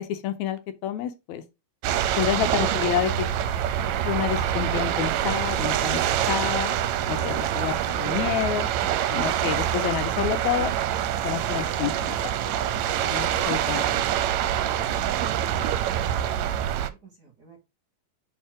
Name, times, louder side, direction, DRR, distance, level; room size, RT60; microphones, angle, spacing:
voice 1, 0.0-1.4 2.2-3.1 4.1-6.7 7.1-8.7 9.1-10.7 11.2-12.5 13.0-14.0, left 11 dB, 80° left, 2.0 m, -29 dB
sound 1, 1.8-16.9, right 11 dB, 80° right, 1.8 m, -25 dB
Human voice / Acoustic guitar, 5.4-13.4, left 7 dB, 50° left, 2.4 m, -47 dB
voice 2, 14.7-17.6, right 4 dB, 40° right, 1.8 m, -48 dB
4.6 x 4.6 x 4.9 m
omnidirectional pair, 3.3 m